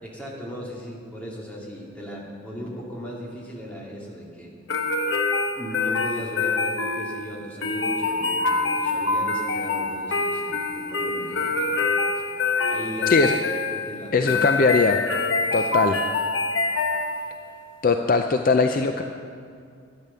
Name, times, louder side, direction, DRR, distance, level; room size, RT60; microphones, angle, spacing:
voice 1, 0.0-4.5 5.5-11.8 12.1-12.2 12.7-13.2 13.7-14.4 15.4-15.8, equal, 5° left, -4 dB, 2.2 m, -37 dB
sound 1, 4.7-17.5, left 3 dB, 65° left, 1.0 m, -25 dB
voice 2, 13.1-13.4 14.1-15.0 15.5-16.0 17.8-19.0, left 4 dB, 45° left, 6 dB, 0.5 m, -20 dB
12.5 x 9.9 x 6.8 m, 2.2 s
head